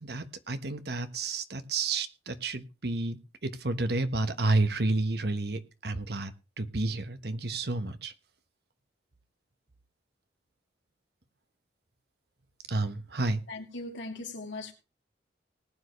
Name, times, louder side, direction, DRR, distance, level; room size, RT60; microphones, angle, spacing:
voice 1, 0.0-8.1 12.7-13.4, right 2 dB, 60° right, 1.2 m, -30 dB
voice 2, 13.5-14.7, left 2 dB, 90° left, 2.8 m, -39 dB
19.5 x 9.0 x 3.2 m
head